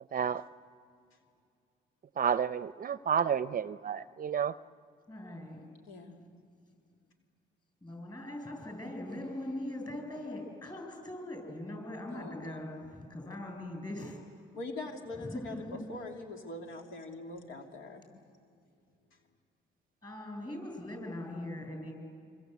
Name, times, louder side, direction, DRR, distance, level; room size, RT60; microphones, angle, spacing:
voice 1, 0.1-0.4 2.2-4.6, right 7 dB, 45° right, 15 dB, 0.6 m, -30 dB
voice 2, 5.1-5.6 7.8-14.4 15.1-15.8 20.0-21.9, left 1 dB, 20° left, 3 dB, 7.7 m, -41 dB
voice 3, 5.9-6.2 12.1-12.6 14.5-18.0 19.1-19.2, left 2 dB, 80° left, 2 dB, 2.8 m, -43 dB
26.5 x 25.0 x 8.3 m, 2.3 s
cardioid pair, 90°, 20 cm